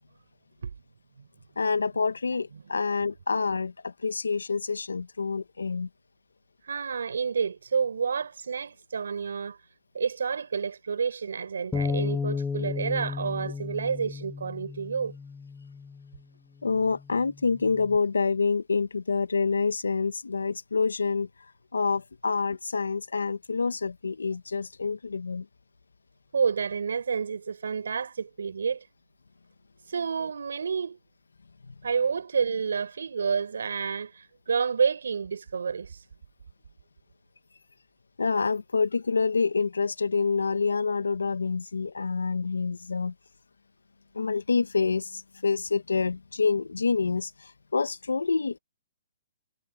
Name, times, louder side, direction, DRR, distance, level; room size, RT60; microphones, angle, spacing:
voice 1, 1.6-5.9 16.6-21.3 21.7-25.5 31.7-31.8 38.2-43.1 44.1-48.6, left 4 dB, 90° left, 1.4 m, -27 dB
voice 2, 6.6-9.6 9.9-15.1 26.3-28.8 29.9-31.0 31.8-36.0, right 6 dB, 75° right, 6.5 m, -29 dB
Bass guitar, 11.7-16.1 16.8-18.0, left 5 dB, 10° left, 2.2 m, -34 dB
hypercardioid pair, 135°, 0 cm